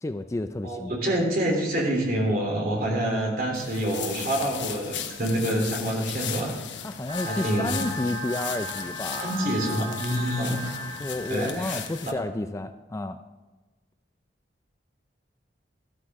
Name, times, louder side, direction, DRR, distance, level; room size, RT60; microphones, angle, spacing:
voice 1, 0.0-0.9 6.8-9.5 11.0-13.2, left 2 dB, 15° left, 9 dB, 0.3 m, -31 dB
voice 2, 0.6-6.5 7.2-7.8 9.2-10.6 11.3-11.8, right 1 dB, 50° right, 0 dB, 3.3 m, -27 dB
sound 1, 3.5-12.1, left 9 dB, 80° left, 1.0 m, -37 dB
sound 2, 7.1-12.1, equal, 35° right, 4.0 m, -36 dB
13.0 x 13.0 x 3.6 m, 1.2 s
head